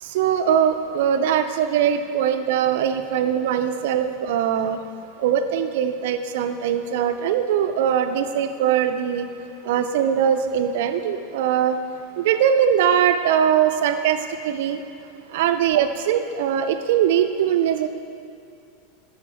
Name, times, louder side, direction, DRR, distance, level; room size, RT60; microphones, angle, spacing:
voice 1, 0.0-4.8 5.2-9.3 9.6-11.8 12.2-14.8 15.3-17.9, right 9 dB, 55° right, 9 dB, 0.4 m, -21 dB
12.0 x 4.7 x 3.3 m, 2.6 s
figure-of-eight pair, 85°, 0 cm